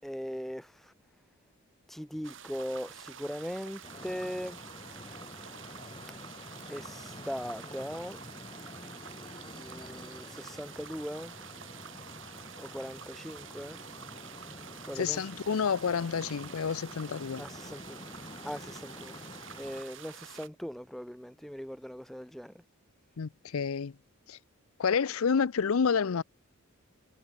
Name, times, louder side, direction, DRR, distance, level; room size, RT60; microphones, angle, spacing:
voice 1, 0.0-0.9 1.9-4.7 6.7-8.2 9.5-11.3 12.6-13.8 14.8-15.2 17.4-18.0 18.4-19.1 19.5-22.6, equal, ahead, 0.4 m, -40 dB
sound 1, 2.2-20.5, right 7 dB, 60° right, 2.0 m, -48 dB
sound 2, 3.8-19.8, left 1 dB, 20° left, 1.5 m, -48 dB
voice 2, 15.0-17.5 23.2-23.9 24.3-24.4 24.8-26.2, left 6 dB, 75° left, 0.5 m, -29 dB
head